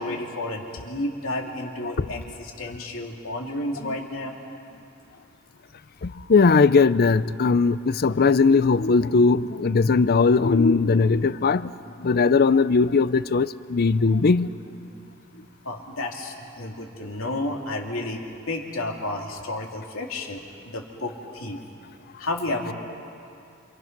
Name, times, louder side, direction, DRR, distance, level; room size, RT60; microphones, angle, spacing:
voice 1, 0.0-4.3 15.6-18.2 18.5-21.6 22.2-22.7, left 2 dB, 70° left, 2.9 m, -31 dB
voice 2, 6.0-11.7 12.0-14.5, left 4 dB, 50° left, 0.5 m, -19 dB
27.5 x 26.5 x 6.0 m
head